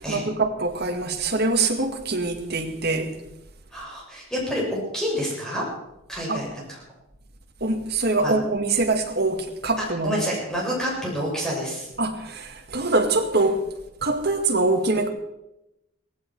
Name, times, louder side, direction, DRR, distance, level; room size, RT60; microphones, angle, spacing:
voice 1, 0.1-3.2 6.3-6.4 7.6-10.1 12.0-13.7 14.0-15.1, right 2 dB, 50° right, 2.0 m, -24 dB
voice 2, 3.7-5.6 6.1-6.8 8.2-8.3 9.8-11.9, equal, 5° left, 6.8 m, -28 dB
18.0 x 15.5 x 4.7 m
head